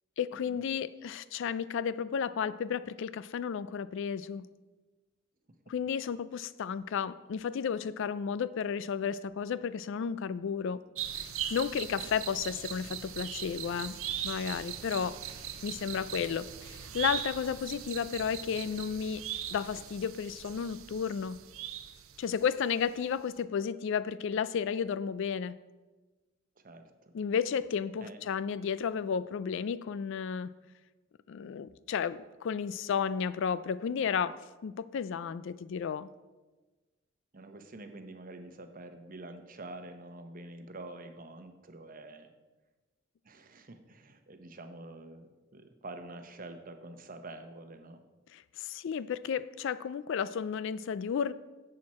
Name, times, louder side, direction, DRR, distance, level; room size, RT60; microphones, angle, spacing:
voice 1, 0.2-4.5 5.7-10.8 11.2-11.3 11.5-14.0 14.2-15.2 15.6-19.2 19.5-21.4 22.2-25.6 27.1-30.5 31.3-36.1 48.3-51.3, left 7 dB, 60° left, 17 dB, 0.3 m, -33 dB
sound 1, 10.9-22.6 22.9-23.0, right 10 dB, 70° right, 0.7 m, -40 dB
voice 2, 37.3-42.3 43.2-48.0, right 2 dB, 40° right, 7 dB, 0.8 m, -47 dB
11.0 x 7.7 x 4.2 m, 1.2 s
head